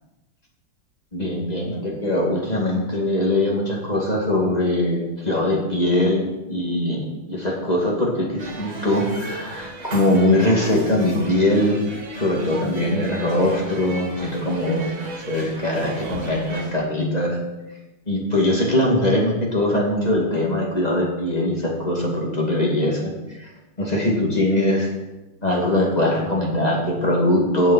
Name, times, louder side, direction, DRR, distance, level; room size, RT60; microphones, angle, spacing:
voice 1, 1.1-11.8 12.2-17.4 18.1-23.1 23.4-23.5 23.8-24.9 25.4-27.7, left 1 dB, 20° left, -1 dB, 2.3 m, -21 dB
sound 1, 8.4-16.7, right 2 dB, 60° right, 2.7 m, -36 dB
8.4 x 7.4 x 8.7 m, 1.0 s
omnidirectional pair, 2.4 m